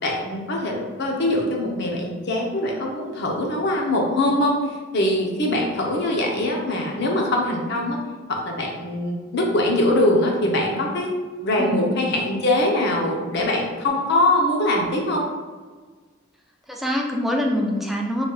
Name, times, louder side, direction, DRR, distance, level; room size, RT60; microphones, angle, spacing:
voice 1, 0.0-8.0 8.3-11.1 11.4-15.3, left 1 dB, 55° left, 0 dB, 0.7 m, -22 dB
voice 2, 11.6-11.9 16.7-18.2, left 1 dB, ahead, 0 dB, 0.4 m, -24 dB
3.9 x 3.3 x 2.3 m, 1.4 s
head